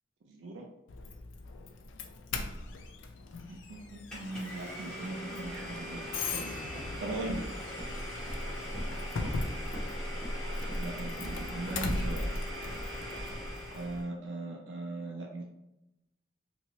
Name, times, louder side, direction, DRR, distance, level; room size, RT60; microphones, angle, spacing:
voice 1, 0.3-0.7 3.5-6.5 7.0-7.4 10.7-12.3 13.7-15.4, right 2 dB, 80° right, 0 dB, 0.4 m, -39 dB
Doorbell, 0.9-14.0, left 3 dB, 85° left, 0.4 m, -40 dB
Domestic sounds home sounds, 4.1-14.1, equal, 5° left, 1.2 m, -42 dB
Walk footsteps, 6.1-14.0, equal, 35° right, 0.7 m, -40 dB
3.0 x 2.7 x 2.8 m, 0.89 s
head